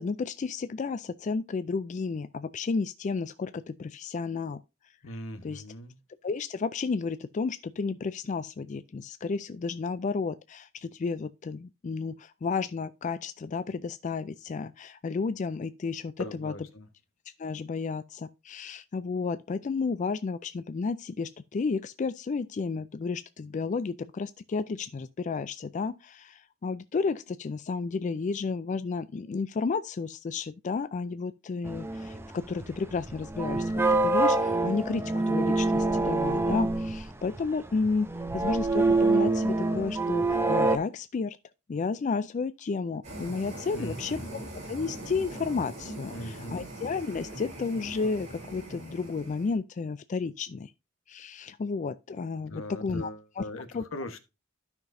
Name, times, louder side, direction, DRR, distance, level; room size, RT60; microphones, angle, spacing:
voice 1, 0.0-4.6 5.1-5.6 6.2-16.5 17.4-41.4 41.7-44.2 44.7-50.7 51.1-53.1 53.4-53.5 53.7-53.8, left 4 dB, 40° left, 0.3 m, -32 dB
voice 2, 5.0-6.0 16.2-16.9 43.7-44.3 46.1-46.7 52.5-53.7 53.9-54.2, left 1 dB, 80° left, 1.2 m, -39 dB
sound 1, 31.6-40.8, right 2 dB, 10° right, 0.7 m, -26 dB
sound 2, 43.0-49.5, right 1 dB, 35° right, 4.1 m, -41 dB
13.0 x 5.9 x 2.6 m
head